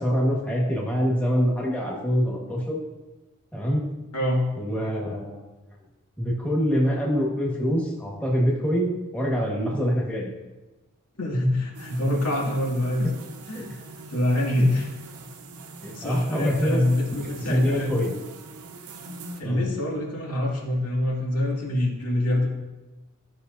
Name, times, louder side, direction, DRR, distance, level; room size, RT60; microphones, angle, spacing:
voice 1, 0.0-2.8 3.5-3.8 4.5-5.4 6.2-10.3 13.5-13.6 15.8-16.8 17.5-18.1 19.4-19.6, equal, 5° left, -4 dB, 1.6 m, -25 dB
voice 2, 4.1-4.4 11.2-13.1 13.5-14.9 15.8-18.0 19.4-22.4, left 1 dB, 80° left, -4 dB, 2.4 m, -25 dB
sound 1, 11.7-19.4, right 3 dB, 80° right, 0.8 m, -42 dB
13.5 x 5.9 x 2.7 m, 1.1 s
head